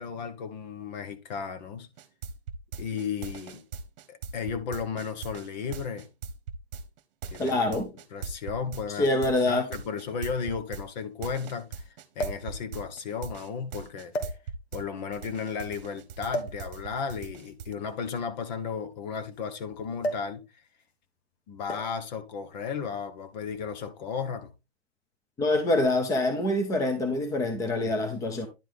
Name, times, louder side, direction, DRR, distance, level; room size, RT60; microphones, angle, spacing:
voice 1, 0.0-1.9 2.8-3.6 4.1-6.1 7.3-7.8 8.1-9.1 9.4-11.8 12.1-14.1 14.7-20.4 21.5-24.5, left 6 dB, 45° left, 1.4 m, -34 dB
sound 1, 2.0-14.8 15.1-17.7, right 5 dB, 45° right, 1.2 m, -39 dB
voice 2, 7.4-7.9 9.0-9.6 25.4-28.5, left 2 dB, 10° left, 0.9 m, -25 dB
sound 2, 8.4-8.5 9.6-9.7 10.0-10.1 12.1-12.6 13.4-13.6 14.1-14.8 16.3-16.6 17.8-19.4 20.0-20.4 20.6-20.9 21.7-22.1 23.0-23.3, equal, 75° left, 2.0 m, -35 dB
10.5 x 4.6 x 3.7 m
hypercardioid pair, 140°, 32 cm